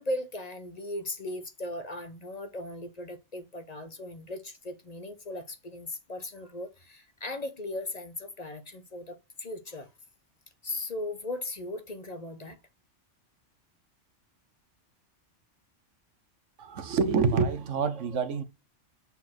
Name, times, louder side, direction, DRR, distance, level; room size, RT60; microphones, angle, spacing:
voice 1, 0.0-9.9 10.6-12.6, left 1 dB, 35° left, 0.9 m, -37 dB
voice 2, 16.6-18.4, right 5 dB, 85° right, 1.2 m, -27 dB
6.8 x 4.3 x 4.4 m
omnidirectional pair, 1.2 m